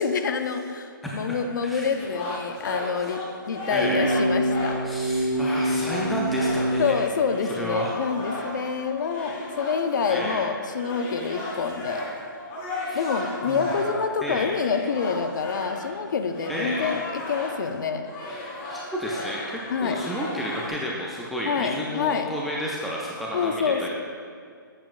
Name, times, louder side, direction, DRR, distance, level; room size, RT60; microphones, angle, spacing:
voice 1, 0.0-4.8 6.8-12.0 12.9-18.1 19.7-20.0 21.4-22.3 23.3-23.9, left 6 dB, 60° left, 7 dB, 0.6 m, -27 dB
voice 2, 1.0-1.9 3.0-3.1 3.7-4.2 4.8-7.0 7.5-8.0 10.1-10.4 12.9-13.1 13.5-13.7 14.2-14.5 16.5-16.9 18.3-23.9, equal, ahead, -4 dB, 0.3 m, -32 dB
sound 1, 2.0-5.0 5.3-17.7 18.0-20.7, left 1 dB, 25° left, 0.9 m, -35 dB
sound 2, 3.7-6.9, right 1 dB, 20° right, 1.5 m, -25 dB
7.5 x 7.0 x 2.4 m, 2.2 s
hypercardioid pair, 155°, 11 cm